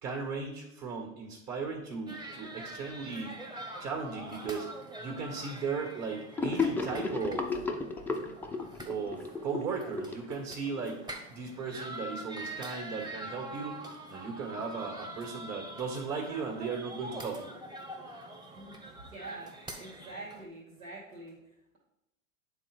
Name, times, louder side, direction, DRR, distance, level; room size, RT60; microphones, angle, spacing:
voice 1, 0.0-3.4 3.8-4.7 5.0-7.5 8.9-17.5, right 5 dB, 40° right, 1 dB, 1.8 m, -37 dB
sound 1, 2.1-20.4, right 1 dB, 10° right, 0.9 m, -45 dB
Gurgling / Sink (filling or washing), 6.4-10.8, left 4 dB, 5° left, 0.4 m, -33 dB
voice 2, 18.5-21.8, right 2 dB, 85° right, -5 dB, 2.4 m, -46 dB
9.3 x 3.6 x 4.9 m, 0.90 s
hypercardioid pair, 105°, 41 cm